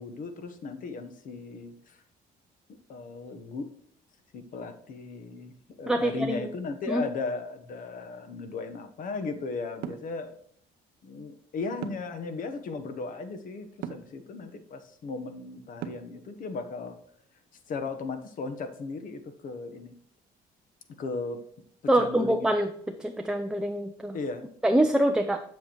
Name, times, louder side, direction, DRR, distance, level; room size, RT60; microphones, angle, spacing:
voice 1, 0.0-2.0 2.9-3.7 4.3-10.4 11.0-17.0 17.7-19.9 21.0-21.4 21.9-22.5 24.1-24.5, left 4 dB, 55° left, 8 dB, 1.0 m, -36 dB
voice 2, 5.9-6.5 6.9-7.0 21.9-22.7 23.0-24.2 24.6-25.4, right 1 dB, 5° right, 5 dB, 0.5 m, -25 dB
sound 1, 9.8-10.1 11.8-12.2 13.8-14.1 15.8-16.2, right 10 dB, 75° right, 0.6 m, -37 dB
7.7 x 7.2 x 3.0 m, 0.65 s
cardioid pair, 110°, 17 cm